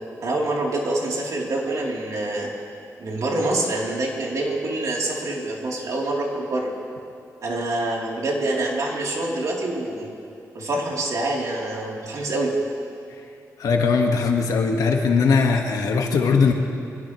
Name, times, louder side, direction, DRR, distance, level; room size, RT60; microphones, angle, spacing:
voice 1, 0.2-2.5 3.0-6.7 7.4-10.1 10.5-12.6, right 2 dB, 65° right, -3 dB, 3.5 m, -26 dB
voice 2, 13.6-16.5, left 5 dB, 85° left, 3 dB, 1.7 m, -20 dB
24.5 x 17.5 x 3.2 m, 2.7 s
cardioid pair, 105°, 6 cm